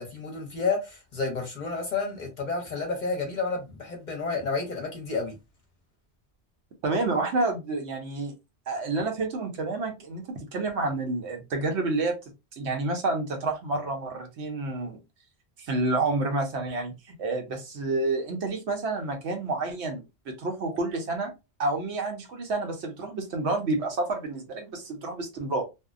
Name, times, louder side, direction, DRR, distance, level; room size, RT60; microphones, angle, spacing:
voice 1, 0.0-5.4, left 4 dB, 45° left, 0.8 m, -30 dB
voice 2, 6.8-8.3 8.7-12.2 12.6-15.0 15.6-21.3 21.6-25.6, right 2 dB, 70° right, 1.0 m, -29 dB
2.6 x 2.0 x 2.4 m
omnidirectional pair, 1.2 m